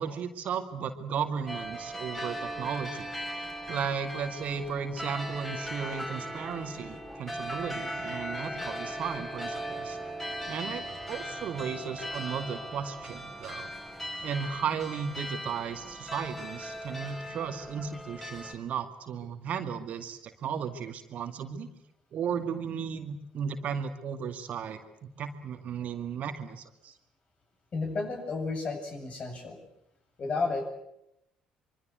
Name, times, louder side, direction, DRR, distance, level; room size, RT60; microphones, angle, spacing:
voice 1, 0.0-3.1 3.7-10.0 10.5-13.7 14.2-21.7 22.1-26.9, right 7 dB, 50° right, 8 dB, 2.1 m, -35 dB
sound 1, 1.5-18.5, equal, 10° left, 5.7 m, -38 dB
voice 2, 27.7-29.6 30.2-30.7, left 3 dB, 40° left, 4 dB, 7.9 m, -32 dB
25.0 x 25.0 x 8.0 m, 0.80 s
figure-of-eight pair, 50°, 3 cm